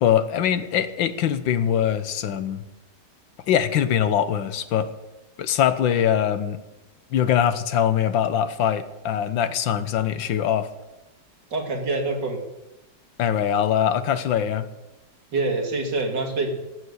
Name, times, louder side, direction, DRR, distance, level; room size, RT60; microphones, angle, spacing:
voice 1, 0.0-2.6 3.5-4.9 5.4-6.6 7.1-10.7 13.2-14.7, left 9 dB, 90° left, 12 dB, 1.7 m, -22 dB
voice 2, 11.5-12.4 15.3-16.6, right 3 dB, 65° right, 2 dB, 2.9 m, -25 dB
15.0 x 7.9 x 8.1 m, 0.99 s
omnidirectional pair, 2.0 m